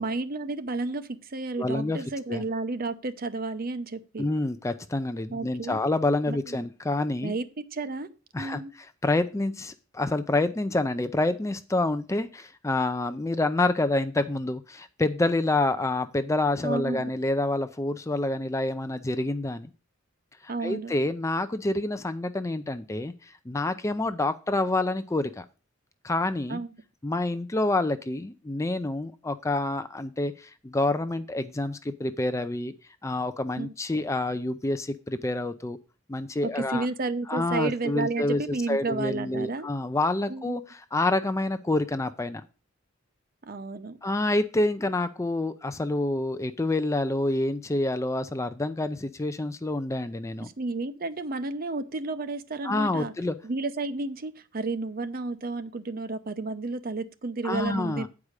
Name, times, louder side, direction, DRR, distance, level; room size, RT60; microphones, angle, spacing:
voice 1, 0.0-4.3 5.3-5.8 6.3-6.7 7.2-8.1 8.4-8.7 16.6-17.1 20.5-20.9 26.5-26.7 33.6-33.7 36.4-39.7 40.3-40.6 43.4-44.0 50.4-53.1 53.4-58.1, right 3 dB, 45° right, 11 dB, 0.7 m, -32 dB
voice 2, 1.6-2.0 2.3-2.4 4.2-7.3 8.3-8.6 9.0-19.7 20.6-23.1 23.5-25.4 26.0-26.6 27.0-32.7 33.0-35.8 36.1-36.9 37.3-42.4 44.0-50.5 52.6-53.3 57.4-58.1, left 2 dB, 15° left, 11 dB, 0.4 m, -27 dB
8.5 x 4.8 x 6.4 m, 0.33 s
head